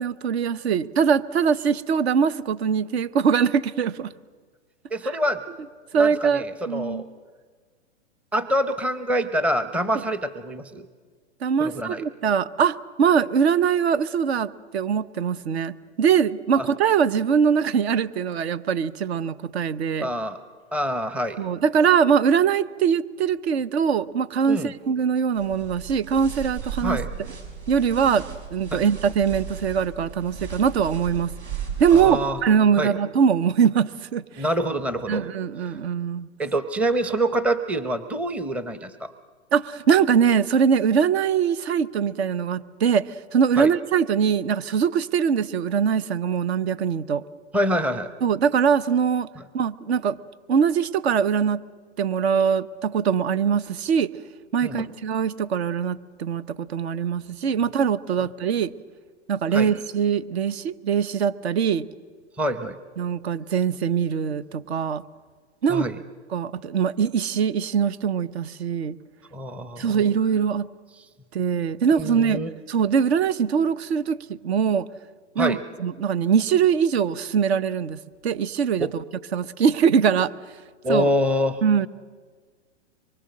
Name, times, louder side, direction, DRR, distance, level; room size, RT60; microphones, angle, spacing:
voice 1, 0.0-4.1 5.9-7.0 11.4-20.1 21.4-27.0 27.7-31.3 31.8-34.4 35.1-36.3 39.5-47.2 48.2-49.3 49.5-50.2 50.5-51.6 52.0-54.1 54.5-58.7 59.3-61.9 63.0-65.0 65.6-65.9 66.3-69.0 69.8-70.7 71.3-72.4 72.7-74.2 74.4-74.9 75.3-79.0 79.3-80.3 80.9-81.1 81.6-81.9, right 7 dB, 65° right, 16 dB, 0.9 m, -22 dB
voice 2, 4.9-5.4 5.9-7.0 8.3-10.9 11.6-12.0 16.6-16.7 20.0-20.4 20.7-21.4 24.5-24.7 26.8-27.1 28.7-28.8 31.9-32.4 32.8-32.9 34.4-35.3 36.4-39.1 43.6-43.7 47.5-48.1 49.4-49.5 54.6-54.9 59.5-59.7 62.4-62.8 65.7-66.0 69.3-70.0 72.0-72.5 75.4-75.6 78.8-78.9 80.8-81.6, equal, 5° right, 11 dB, 0.6 m, -25 dB
sound 1, 25.4-32.3, right 7 dB, 80° right, 6.1 m, -36 dB
24.0 x 23.5 x 6.5 m, 1.5 s
hypercardioid pair, 130°, 35 cm